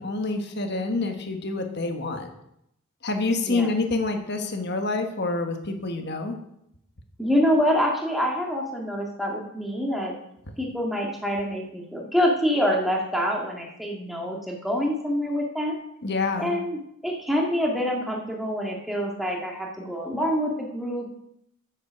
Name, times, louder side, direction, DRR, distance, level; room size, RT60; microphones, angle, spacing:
voice 1, 0.0-2.3 3.0-6.4 16.0-16.5, left 3 dB, 50° left, 5 dB, 1.4 m, -27 dB
voice 2, 7.2-10.1 10.6-15.7 16.4-21.1, equal, ahead, -1 dB, 1.8 m, -26 dB
8.7 x 7.4 x 6.2 m, 0.78 s
head